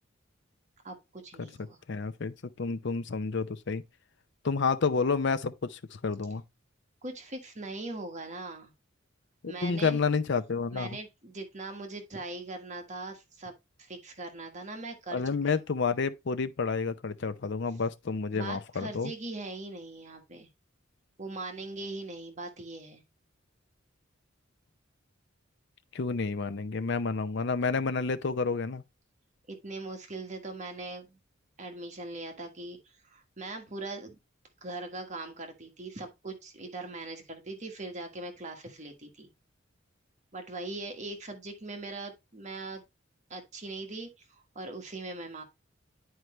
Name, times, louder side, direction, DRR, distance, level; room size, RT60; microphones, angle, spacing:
voice 1, 0.8-1.8 7.0-8.7 9.5-10.0 10.7-15.6 18.3-20.5 21.2-23.0 29.5-31.2 31.6-34.2 34.6-39.3 40.3-42.8 43.3-45.4, right 2 dB, 40° right, 1.4 m, -41 dB
voice 2, 1.9-3.8 4.4-6.4 9.4-10.9 15.1-19.1 25.9-28.8, left 4 dB, 60° left, 0.6 m, -30 dB
9.3 x 4.7 x 3.1 m
head